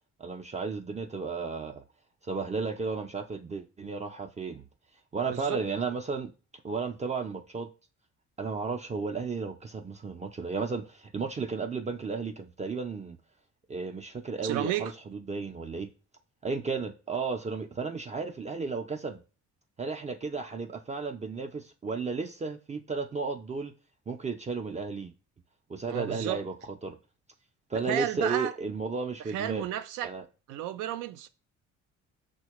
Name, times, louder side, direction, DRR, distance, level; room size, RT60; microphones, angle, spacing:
voice 1, 0.2-1.8 2.2-4.6 5.1-6.3 6.6-7.7 8.4-13.2 13.7-15.9 16.4-19.2 19.8-23.7 24.1-25.1 25.7-26.5 26.8-27.0 27.7-29.7 30.0-30.2, right 4 dB, 25° right, 0.3 m, -33 dB
voice 2, 14.4-14.9 25.8-26.4 27.9-28.5 29.3-30.1 30.5-31.3, right 11 dB, 85° right, 0.5 m, -32 dB
5.6 x 2.1 x 3.0 m
cardioid pair, 90°, 30 cm